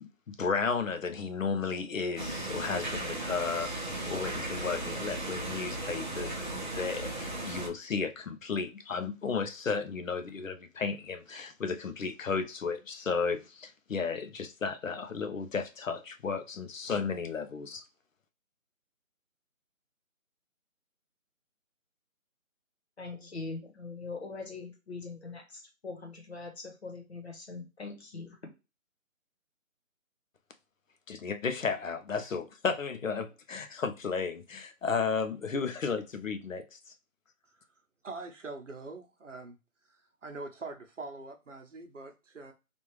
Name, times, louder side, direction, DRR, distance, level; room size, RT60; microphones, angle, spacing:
voice 1, 0.0-17.8 31.1-36.8, left 5 dB, 65° left, 0.7 m, -34 dB
sound 1, 2.2-7.7, right 2 dB, 35° right, 0.8 m, -36 dB
voice 2, 23.0-28.4, left 3 dB, 50° left, 1.1 m, -42 dB
voice 3, 38.0-39.6 39.9-42.5, right 3 dB, 60° right, 0.9 m, -43 dB
3.5 x 2.5 x 2.9 m
figure-of-eight pair, 170°, 42 cm